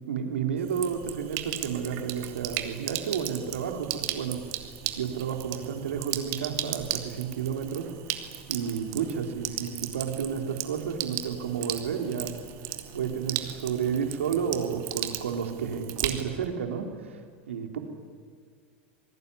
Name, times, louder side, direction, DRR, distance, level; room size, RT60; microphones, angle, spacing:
voice 1, 0.1-4.4 5.0-7.9 8.5-12.4 12.9-17.2 17.5-17.8, right 7 dB, 85° right, 4 dB, 3.7 m, -31 dB
Sink (filling or washing), 0.6-16.5, right 13 dB, 55° right, 2.8 m, -36 dB
28.0 x 19.0 x 9.9 m, 2.1 s
hypercardioid pair, 90°, 7 cm